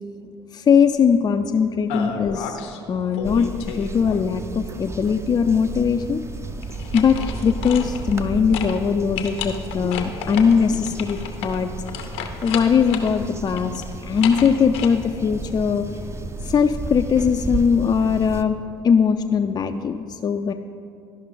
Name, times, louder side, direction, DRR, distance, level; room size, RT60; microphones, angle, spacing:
voice 1, 0.5-2.6 2.9-6.2 6.9-11.7 12.4-15.8 16.4-18.6 18.8-20.5, left 6 dB, 35° left, 6 dB, 0.4 m, -20 dB
sound 1, 1.9-2.8 3.1-4.5 6.6-8.3 8.5-8.8 9.1-13.1 13.5-14.9, left 7 dB, 75° left, 0.7 m, -32 dB
sound 2, 3.2-18.4, right 2 dB, 20° right, 0.6 m, -33 dB
12.0 x 5.4 x 3.8 m, 2.4 s
hypercardioid pair, 65°, 13 cm